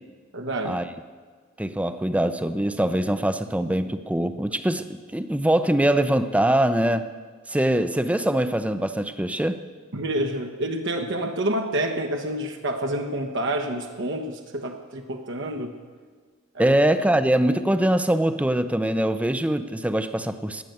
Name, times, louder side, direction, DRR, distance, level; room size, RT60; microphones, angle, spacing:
voice 1, 0.3-0.8 9.9-15.8 16.5-16.8, right 1 dB, 60° right, 3 dB, 1.1 m, -28 dB
voice 2, 1.6-7.0 7.5-9.6 16.6-20.6, right 1 dB, 5° right, 11 dB, 0.6 m, -23 dB
18.0 x 6.8 x 9.3 m, 1.5 s
head